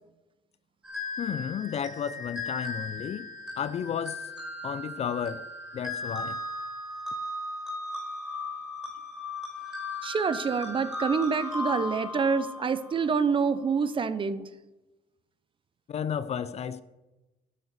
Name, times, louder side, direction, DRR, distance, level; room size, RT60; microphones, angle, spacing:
sound 1, 0.8-13.2, left 2 dB, 5° right, 2.8 m, -37 dB
voice 1, 1.2-3.3 3.6-4.3 4.6-5.5 5.7-6.4 15.9-16.8, left 8 dB, 40° left, 0.4 m, -32 dB
voice 2, 10.0-14.5, right 5 dB, 30° right, 0.6 m, -27 dB
9.3 x 5.4 x 6.8 m
cardioid pair, 110°, 17 cm